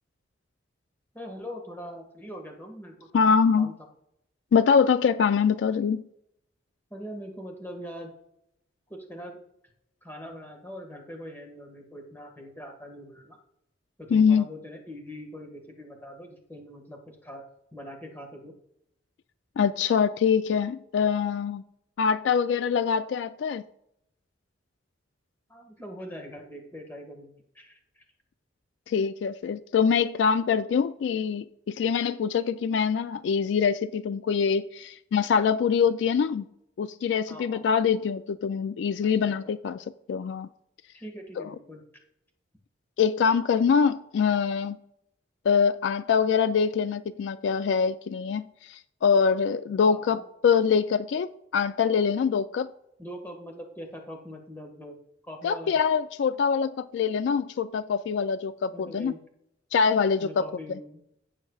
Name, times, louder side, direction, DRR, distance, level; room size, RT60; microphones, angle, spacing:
voice 1, 1.1-3.7 6.9-8.1 8.9-9.4 10.0-13.4 14.0-17.4 17.7-18.5 25.5-28.0 37.3-37.9 39.2-39.3 40.9-41.8 49.9-50.2 53.0-54.9 55.2-55.8 58.7-59.2 60.2-61.0, equal, 10° left, 1.7 m, -42 dB
voice 2, 3.1-3.7 4.5-6.0 14.1-14.5 19.6-21.6 22.0-23.6 28.9-36.4 36.8-40.5 41.4-41.5 43.0-44.8 45.5-51.3 51.5-52.7 55.4-59.1 59.7-60.4, left 6 dB, 70° left, 0.3 m, -24 dB
16.5 x 6.6 x 2.4 m
head